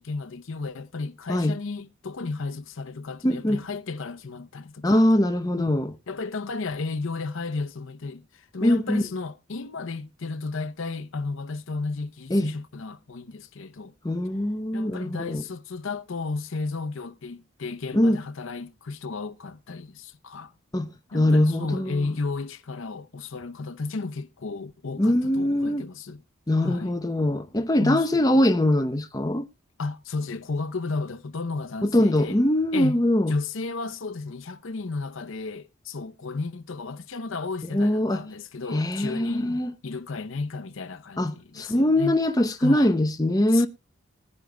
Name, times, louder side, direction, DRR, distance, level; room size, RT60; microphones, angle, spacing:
voice 1, 0.0-5.1 5.6-5.8 6.1-13.9 14.7-20.5 21.1-26.2 26.6-27.0 27.8-28.2 29.8-32.4 32.7-33.0 33.3-42.2 42.6-42.9 43.5-43.7, left 3 dB, 75° left, 0.7 m, -33 dB
voice 2, 3.2-3.6 4.8-5.9 8.6-9.0 12.3-12.5 14.0-15.4 17.9-18.2 20.7-20.9 21.1-22.2 25.0-25.8 26.5-29.5 31.8-33.4 37.7-38.2 38.7-39.7 41.2-43.7, left 1 dB, 20° left, 0.7 m, -22 dB
20.5 x 9.8 x 2.2 m
head